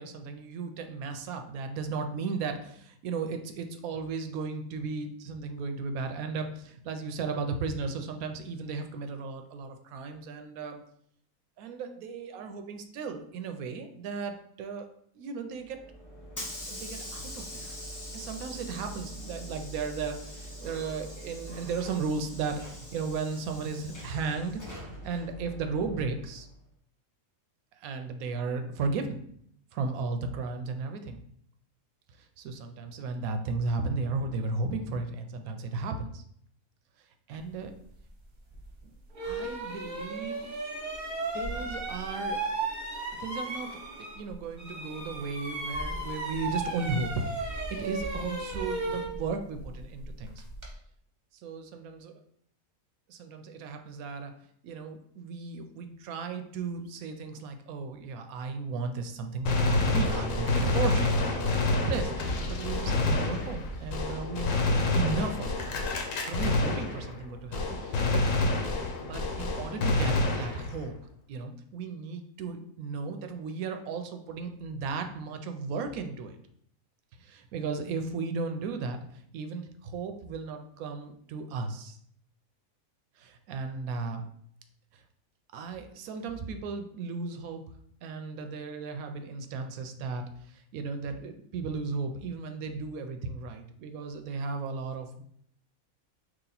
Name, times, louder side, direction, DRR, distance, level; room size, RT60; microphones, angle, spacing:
voice 1, 0.0-10.8 11.6-14.9 15.2-15.8 16.7-17.8 18.1-26.5 27.8-29.2 29.7-31.2 32.4-36.2 37.3-37.7 38.8-38.9 39.2-40.5 41.3-42.4 43.2-43.8 44.2-47.1 47.4-50.4 51.4-52.2 53.1-54.3 54.6-65.7 66.3-68.5 69.0-70.9 71.3-76.4 77.2-82.0 83.2-84.2 84.9-85.0 85.5-87.6 88.0-95.2, right 4 dB, 80° right, 6 dB, 1.0 m, -35 dB
Hiss / Sliding door, 15.6-26.5, equal, 20° left, 0.5 m, -43 dB
sound 1, 38.5-38.6 39.1-44.3 44.6-50.7, right 2 dB, 40° right, 0.8 m, -35 dB
Gunshot gunfire, 59.5-67.3 67.5-70.9, left 2 dB, 70° left, 1.0 m, -28 dB
3.2 x 2.9 x 3.9 m, 0.67 s
omnidirectional pair, 1.5 m